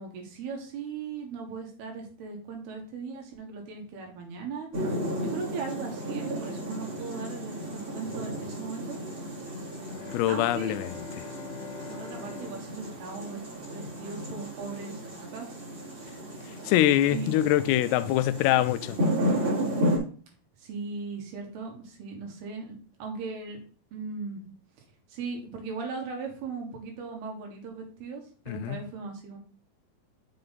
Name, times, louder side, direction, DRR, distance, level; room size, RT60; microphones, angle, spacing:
voice 1, 0.0-9.0 10.3-10.8 11.9-13.4 13.7-15.6 16.0-16.2 17.1-17.3 20.6-23.6 23.9-24.4 25.1-29.4, right 4 dB, 75° right, 3.5 m, -38 dB
sound 1, 4.7-20.0, equal, 35° right, 3.2 m, -33 dB
Bowed string instrument, 9.7-14.3, left 6 dB, 65° left, 2.2 m, -44 dB
voice 2, 10.1-11.3 16.7-19.0 28.5-28.8, left 13 dB, 90° left, 2.7 m, -24 dB
6.8 x 5.4 x 3.9 m
omnidirectional pair, 4.7 m